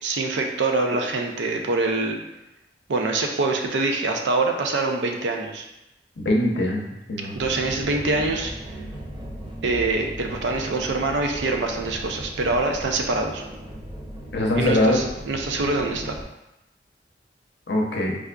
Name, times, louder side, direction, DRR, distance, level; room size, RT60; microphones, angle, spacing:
voice 1, 0.0-2.2 2.9-5.7 7.3-8.5 9.6-13.4 14.6-16.2, right 3 dB, 85° right, 3 dB, 0.5 m, -24 dB
voice 2, 6.2-7.3 14.3-15.0 17.7-18.1, left 1 dB, 70° left, -1 dB, 0.6 m, -22 dB
sound 1, 7.4-16.2, right 1 dB, 25° right, 0.5 m, -37 dB
4.6 x 2.5 x 2.2 m, 0.92 s
head